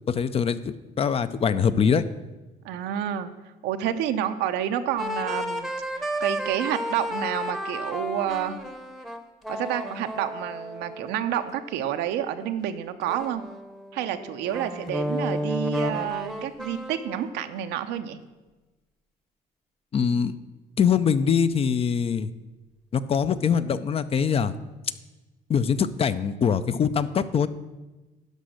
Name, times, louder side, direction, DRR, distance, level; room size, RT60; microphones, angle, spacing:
voice 1, 0.1-2.0 19.9-20.3 20.8-22.3 22.9-24.5 25.5-27.5, left 7 dB, 35° left, 14 dB, 0.5 m, -23 dB
voice 2, 2.6-3.3 3.6-8.6 9.5-13.4 13.9-18.2, right 10 dB, 85° right, 9 dB, 0.7 m, -29 dB
sound 1, 5.0-12.3 13.0-17.5, equal, ahead, 0.8 m, -32 dB
12.0 x 5.2 x 6.5 m, 1.2 s
cardioid pair, 110°, 17 cm